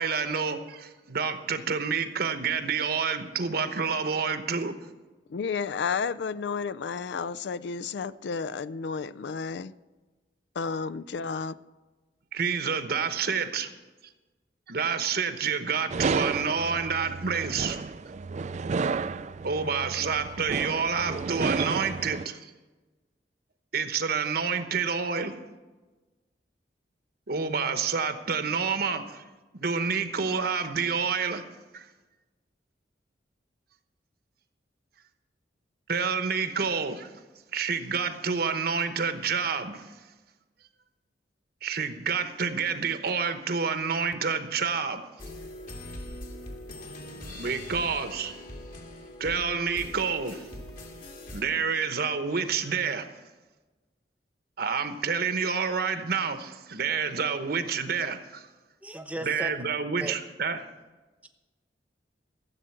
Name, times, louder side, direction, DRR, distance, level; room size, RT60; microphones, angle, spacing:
voice 1, 0.0-4.8 12.3-13.7 14.7-17.8 19.4-22.5 23.7-25.3 27.3-29.2 29.5-31.4 31.7-31.9 35.9-37.1 37.5-39.9 41.6-45.0 47.3-48.4 49.2-50.4 51.3-53.1 54.6-58.5 59.2-60.7, right 5 dB, 60° right, 1.0 m, -28 dB
voice 2, 5.3-9.7 10.6-11.6, left 5 dB, 70° left, 0.4 m, -32 dB
sound 1, 15.9-22.2, right 4 dB, 40° right, 0.4 m, -31 dB
sound 2, 45.2-51.4, left 1 dB, 50° left, 2.1 m, -42 dB
voice 3, 58.8-59.5 60.0-60.1 61.2-61.3, right 1 dB, 10° right, 0.9 m, -36 dB
14.0 x 7.9 x 7.8 m
head